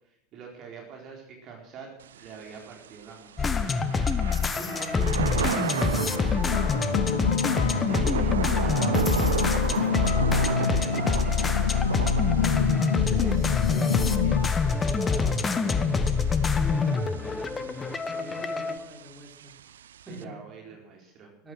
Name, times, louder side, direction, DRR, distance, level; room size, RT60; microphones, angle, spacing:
voice 1, 0.3-3.7 6.3-6.7 7.5-9.3 9.6-13.3 13.7-15.3 15.6-16.0 20.1-21.3, right 5 dB, 40° right, 0 dB, 4.3 m, -45 dB
Thunder / Rain, 2.0-20.2, right 10 dB, 70° right, 0.5 m, -35 dB
sound 1, 3.4-18.8, left 5 dB, 20° left, 1.2 m, -26 dB
voice 2, 4.6-5.8 6.1-6.9 13.1-13.5 14.8-15.4 16.6-17.7 18.0-19.5 20.1-20.3 20.7-20.8 21.4-21.5, right 1 dB, 15° right, 0 dB, 4.7 m, -42 dB
sound 2, 5.9-14.5, left 6 dB, 80° left, 0.4 m, -28 dB
14.5 x 12.5 x 6.3 m, 0.77 s
figure-of-eight pair, 80°, 0 cm